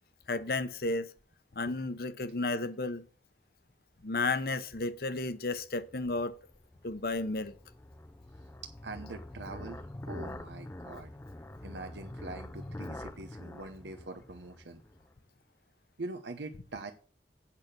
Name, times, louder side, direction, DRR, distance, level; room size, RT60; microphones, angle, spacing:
voice 1, 0.3-1.1 1.5-3.0 4.0-6.3 6.8-7.5, left 3 dB, 55° left, 0.8 m, -33 dB
sound 1, 5.6-15.1, left 1 dB, 15° left, 0.4 m, -45 dB
voice 2, 8.6-11.1 11.6-14.8 16.0-16.9, right 2 dB, 80° right, 0.8 m, -43 dB
8.4 x 5.8 x 6.7 m
head